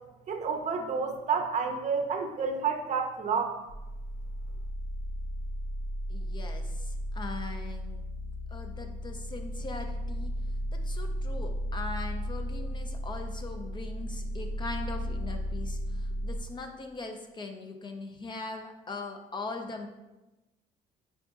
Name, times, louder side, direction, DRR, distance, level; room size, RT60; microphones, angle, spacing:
voice 1, 0.3-3.6, right 5 dB, 45° right, 4 dB, 0.6 m, -30 dB
sound 1, 3.7-16.4, equal, 75° left, 0.6 m, -35 dB
voice 2, 6.1-8.0 8.5-10.3 10.8-19.9, left 3 dB, 25° left, 4 dB, 0.4 m, -40 dB
4.9 x 3.6 x 2.4 m, 1.0 s
cardioid pair, 110°, 17 cm